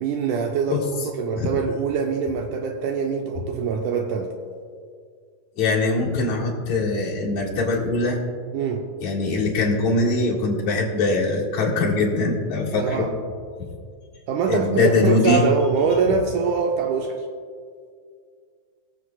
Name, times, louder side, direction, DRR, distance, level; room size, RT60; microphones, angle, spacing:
voice 1, 0.0-4.3 8.5-8.9 12.8-13.1 14.3-17.2, right 5 dB, 80° right, 2 dB, 1.9 m, -24 dB
voice 2, 5.6-8.2 9.0-13.1 14.5-15.4, left 3 dB, 60° left, -5 dB, 2.9 m, -22 dB
21.0 x 7.5 x 2.3 m, 2.1 s
omnidirectional pair, 4.0 m